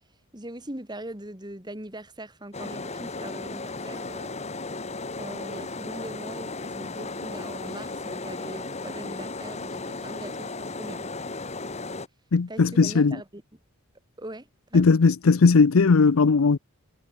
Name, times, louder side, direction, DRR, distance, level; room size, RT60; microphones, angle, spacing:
voice 1, 0.3-4.3 5.2-11.1 12.5-13.4 14.2-15.0, right 1 dB, 20° right, 2.7 m, -41 dB
sound 1, 2.5-12.1, left 3 dB, 30° left, 1.4 m, -35 dB
voice 2, 12.3-13.2 14.7-16.6, left 4 dB, 70° left, 0.6 m, -18 dB
head